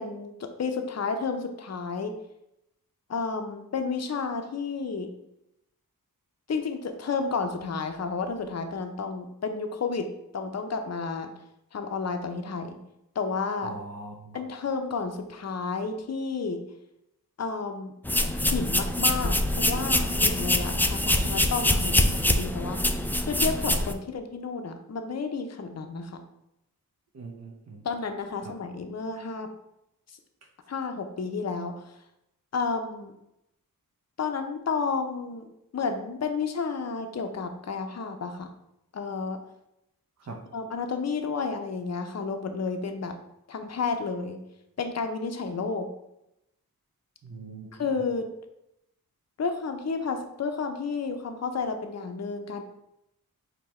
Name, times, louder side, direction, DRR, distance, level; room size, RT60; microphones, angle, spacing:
voice 1, 0.0-2.1 3.1-5.1 6.5-10.1 10.3-11.3 11.7-12.8 13.2-13.7 14.3-16.6 17.4-17.9 18.4-22.9 23.2-26.2 27.8-29.5 30.7-31.9 32.5-33.1 34.2-35.4 35.7-38.5 38.9-39.4 40.5-43.2 43.5-44.4 44.8-45.9 47.8-48.3 49.4-52.6, left 4 dB, 45° left, 6 dB, 0.6 m, -31 dB
voice 2, 13.6-14.4 27.1-27.8 40.3-40.4 47.2-47.9, right 2 dB, 50° right, 0 dB, 0.7 m, -41 dB
sound 1, 18.0-23.9, left 1 dB, 5° left, 0.3 m, -24 dB
4.7 x 2.2 x 4.2 m, 0.84 s
cardioid pair, 50°, 35 cm